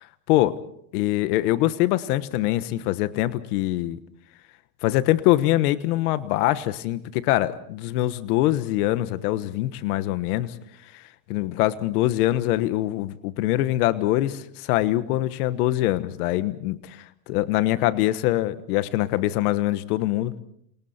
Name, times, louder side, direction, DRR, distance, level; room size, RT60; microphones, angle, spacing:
voice 1, 0.3-0.6 0.9-4.0 4.8-10.5 10.9-11.0 11.3-20.4, left 15 dB, 80° left, 13 dB, 1.4 m, -23 dB
28.5 x 27.0 x 4.4 m, 0.67 s
supercardioid pair, 120°, 45 cm